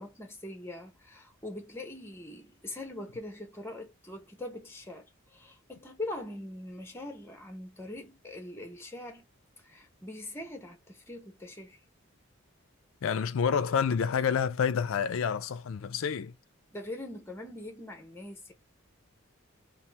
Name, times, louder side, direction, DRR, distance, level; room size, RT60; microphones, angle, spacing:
voice 1, 0.0-9.2 9.6-11.8 16.7-18.5, left 1 dB, 10° left, 0.8 m, -42 dB
voice 2, 13.0-16.3, left 7 dB, 70° left, 0.4 m, -28 dB
2.7 x 2.0 x 3.2 m
head